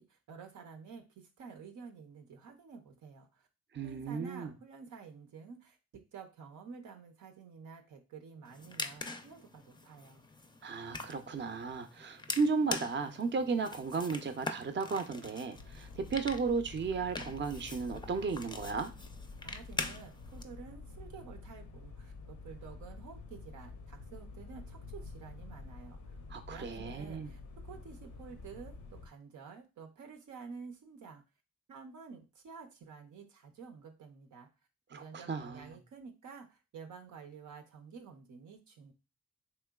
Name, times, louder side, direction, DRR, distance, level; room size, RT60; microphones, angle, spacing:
voice 1, 0.1-3.5 3.8-10.3 19.4-26.1 26.5-31.2 31.7-34.5 34.9-38.9, right 5 dB, 85° right, 0.6 m, -50 dB
voice 2, 3.7-4.5 10.6-18.9 26.3-27.3 34.9-35.7, right 4 dB, 40° right, 0.5 m, -34 dB
sound 1, 8.4-20.4, left 3 dB, 15° left, 0.4 m, -44 dB
sound 2, 15.5-29.1, left 3 dB, 80° left, 0.6 m, -49 dB
3.2 x 2.9 x 2.3 m
cardioid pair, 45°, 29 cm